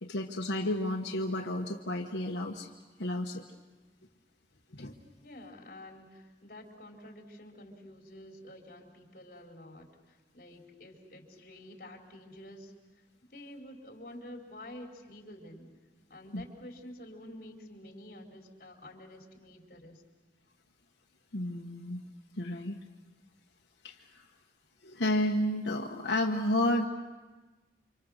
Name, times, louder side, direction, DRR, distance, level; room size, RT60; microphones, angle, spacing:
voice 1, 0.0-2.7 3.0-3.4 4.7-4.9 16.3-16.4 21.3-22.0 22.4-22.8 23.8-24.3 24.8-26.9, left 1 dB, 90° left, 1 dB, 1.3 m, -31 dB
voice 2, 5.2-12.7 13.3-15.7 16.1-20.0, left 1 dB, 50° left, 1 dB, 4.2 m, -49 dB
29.5 x 26.0 x 6.5 m, 1.2 s
head